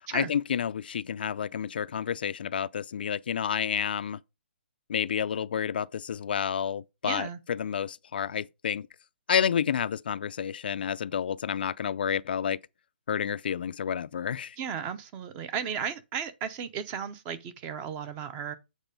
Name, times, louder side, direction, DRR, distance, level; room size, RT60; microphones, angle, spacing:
voice 1, 0.1-4.2 4.9-8.9 9.3-12.6 13.1-14.6, left 8 dB, 60° left, 0.4 m, -30 dB
voice 2, 7.0-7.4 14.6-18.6, right 7 dB, 20° right, 0.7 m, -35 dB
8.0 x 4.2 x 5.2 m
hypercardioid pair, 160°, 6 cm